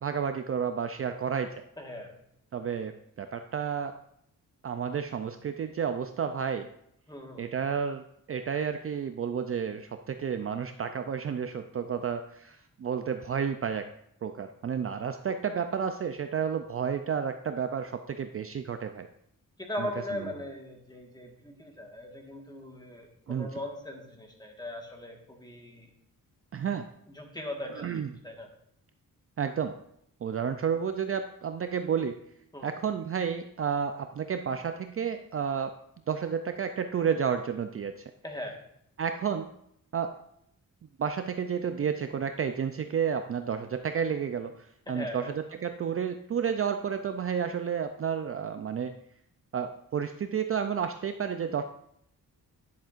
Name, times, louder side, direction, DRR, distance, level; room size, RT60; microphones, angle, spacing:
voice 1, 0.0-1.6 2.5-4.0 4.6-6.7 7.4-8.0 8.3-13.9 14.2-19.1 19.8-20.3 23.3-23.5 26.5-26.9 27.8-28.1 29.4-29.8 30.2-32.2 32.6-35.8 36.1-38.0 39.0-39.5 39.9-40.2 41.0-48.9 49.5-51.6, right 7 dB, 40° right, 8 dB, 0.4 m, -31 dB
voice 2, 1.8-2.1 7.1-7.5 15.2-15.4 19.6-25.9 27.1-27.9 28.2-28.5 32.5-32.7 38.2-38.6 44.9-45.3, left 1 dB, 10° left, 1 dB, 1.4 m, -39 dB
10.5 x 7.2 x 2.5 m, 0.72 s
wide cardioid pair, 120°, 34 cm